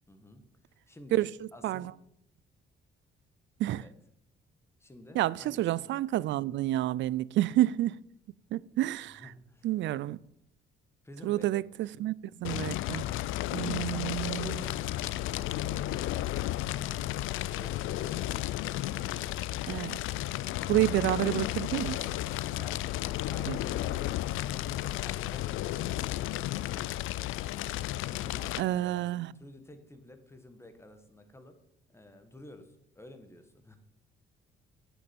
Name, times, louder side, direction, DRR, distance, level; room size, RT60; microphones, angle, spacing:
voice 1, 0.1-1.9 3.8-3.9 4.8-5.9 9.1-9.7 11.0-11.6 13.7-15.9 22.5-22.9 23.3-27.1 28.1-31.6 31.9-33.8, left 1 dB, 15° left, 1.7 m, -51 dB
voice 2, 5.1-8.0 8.5-9.3 9.6-10.2 11.2-12.1 12.4-13.0 13.5-14.6 19.7-20.0 20.7-22.0 23.5-23.6 28.6-29.3, right 14 dB, 70° right, 0.4 m, -29 dB
Fire, 12.4-28.6, left 14 dB, 85° left, 0.4 m, -33 dB
9.1 x 7.0 x 7.2 m
cardioid pair, 90°, 20 cm